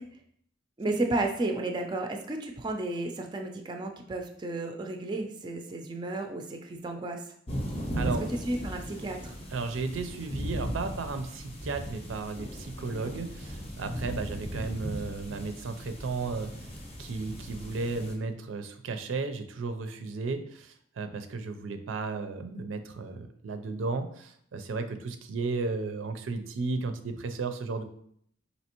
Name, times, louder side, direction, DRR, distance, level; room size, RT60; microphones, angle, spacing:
voice 1, 0.8-7.2 8.3-9.4, right 2 dB, 25° right, 4 dB, 0.3 m, -32 dB
sound 1, 7.5-18.2, equal, 30° left, 0.6 m, -37 dB
voice 2, 9.5-16.5 17.0-27.8, right 4 dB, 90° right, 8 dB, 0.4 m, -34 dB
4.2 x 2.8 x 2.9 m, 0.66 s
head